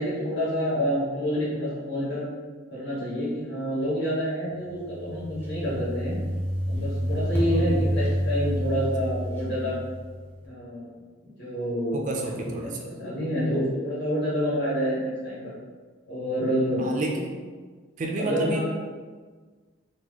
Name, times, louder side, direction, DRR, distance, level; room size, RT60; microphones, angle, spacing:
voice 1, 0.0-2.2 2.7-6.1 6.7-9.7 10.4-10.9 11.2-15.4 16.1-16.9 18.2-18.6, equal, 55° left, -9 dB, 1.5 m, -28 dB
sound 1, 4.7-10.4, equal, 10° left, 0.6 m, -28 dB
voice 2, 11.9-12.8 16.8-17.3 18.0-18.6, right 2 dB, 40° right, 1 dB, 0.3 m, -30 dB
2.9 x 2.2 x 3.9 m, 1.5 s
head